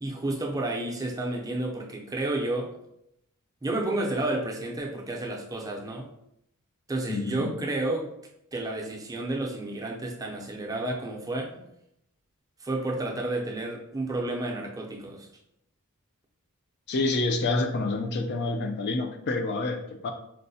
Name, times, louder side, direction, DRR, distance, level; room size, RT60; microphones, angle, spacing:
voice 1, 0.0-2.7 3.6-6.1 6.9-8.1 8.5-11.5 12.6-15.3, right 2 dB, 15° right, 0 dB, 0.5 m, -31 dB
voice 2, 7.1-7.5 16.9-20.1, left 2 dB, 50° left, 6 dB, 0.4 m, -28 dB
4.5 x 2.0 x 2.7 m, 0.78 s
head